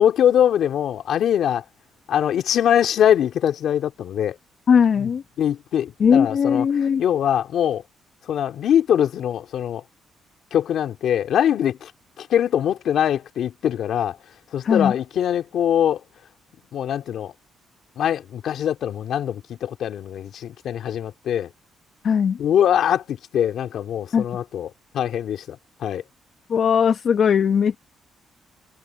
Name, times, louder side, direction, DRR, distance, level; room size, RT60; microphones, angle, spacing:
voice 1, 0.0-1.6 2.1-4.4 5.0-5.1 5.4-7.8 8.3-9.8 10.5-11.9 12.2-14.2 14.5-16.0 16.7-17.3 18.0-21.5 22.4-26.0, left 10 dB, 70° left, 2.6 m, -22 dB
voice 2, 4.7-5.2 6.0-7.0 14.6-14.9 22.0-22.4 24.1-24.2 26.5-27.8, left 7 dB, 55° left, 1.0 m, -18 dB
cardioid pair, 90°, 0 cm